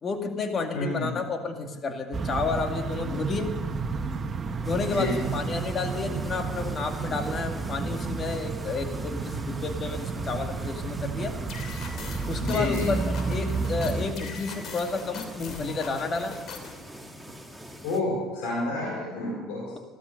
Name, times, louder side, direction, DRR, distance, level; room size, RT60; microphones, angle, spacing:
voice 1, 0.0-3.5 4.6-11.4 12.3-16.4, left 4 dB, 40° left, 5 dB, 2.2 m, -31 dB
voice 2, 0.7-1.2 4.9-5.5 12.4-12.9 17.8-19.7, left 2 dB, 80° left, -3 dB, 4.5 m, -29 dB
sound 1, 2.1-14.1, right 4 dB, 35° right, 1.3 m, -31 dB
sound 2, 4.6-18.0, equal, ahead, 2.1 m, -45 dB
sound 3, 11.5-16.8, left 5 dB, 60° left, 2.9 m, -41 dB
14.0 x 13.5 x 6.6 m, 1.3 s
supercardioid pair, 75°, 0 cm